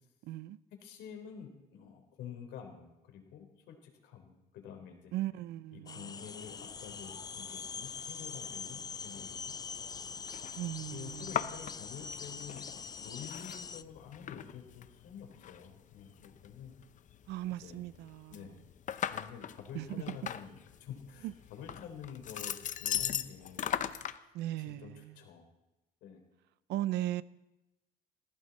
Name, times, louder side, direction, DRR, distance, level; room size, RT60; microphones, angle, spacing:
voice 1, 0.3-0.6 5.1-6.1 10.6-11.3 17.3-18.5 19.7-20.2 21.2-21.3 24.3-25.2 26.7-27.2, right 14 dB, 80° right, 0.6 m, -37 dB
voice 2, 0.8-5.1 5.7-9.5 10.9-16.7 17.5-17.8 18.3-18.5 19.1-23.7 24.7-25.5 26.0-26.2, left 8 dB, 85° left, 3.8 m, -49 dB
sound 1, 5.9-13.8, left 5 dB, 25° left, 0.5 m, -43 dB
sound 2, 6.4-24.2, left 9 dB, 50° left, 0.8 m, -41 dB
18.5 x 16.0 x 4.2 m
cardioid pair, 110°, 17 cm